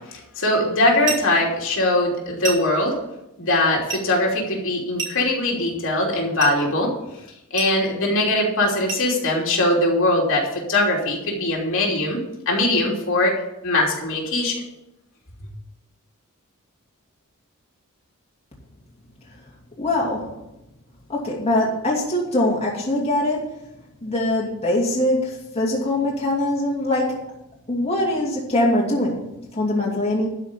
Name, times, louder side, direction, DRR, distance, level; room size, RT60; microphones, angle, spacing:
voice 1, 0.0-3.0 3.4-6.9 7.5-13.3 13.6-14.6, left 1 dB, 60° left, -2 dB, 3.1 m, -21 dB
sound 1, 1.0-1.4 2.4-2.8 3.9-4.1 5.0-5.4 6.4-6.6 7.6-7.8 8.9-9.1, right 5 dB, 60° right, 3.2 m, -30 dB
voice 2, 19.8-20.3 21.1-23.6 24.0-27.3 27.7-30.3, left 1 dB, 30° left, -4 dB, 2.6 m, -22 dB
12.5 x 5.1 x 8.9 m, 0.89 s
head